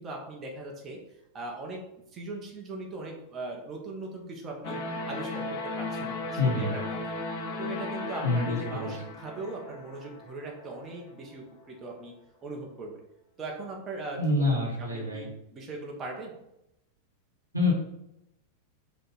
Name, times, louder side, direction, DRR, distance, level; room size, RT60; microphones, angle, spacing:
voice 1, 0.0-1.8 2.1-4.8 5.1-7.2 7.5-12.1 12.4-12.9 13.4-14.5 14.8-16.4, right 2 dB, 25° right, -1 dB, 1.0 m, -39 dB
sound 1, 4.6-10.7, left 2 dB, 45° left, 0.6 m, -36 dB
voice 2, 6.4-6.7 8.2-9.0 14.2-15.3 17.5-17.7, left 2 dB, 90° right, -4 dB, 1.3 m, -27 dB
5.3 x 2.4 x 4.1 m, 0.85 s
figure-of-eight pair, 90°, 0 cm